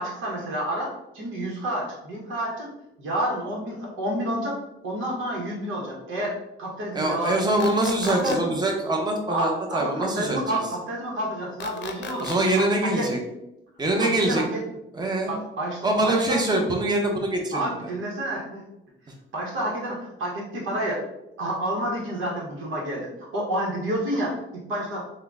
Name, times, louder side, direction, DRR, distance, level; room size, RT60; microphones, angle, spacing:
voice 1, 0.0-2.7 3.0-4.6 4.8-6.3 6.6-7.4 8.0-8.5 9.3-12.3 12.6-13.1 14.0-14.6 15.3-16.4 17.5-18.6 19.3-21.0 21.4-25.0, right 1 dB, 80° right, -3 dB, 1.0 m, -29 dB
voice 2, 6.9-10.6 12.2-13.2 13.8-14.4 14.9-15.3 15.8-17.7, right 1 dB, 20° right, 1 dB, 0.8 m, -24 dB
sound 1, 7.6-8.4 11.6-12.4, left 5 dB, 65° left, 0.6 m, -35 dB
3.6 x 2.2 x 3.5 m, 0.89 s
cardioid pair, 90°, 20 cm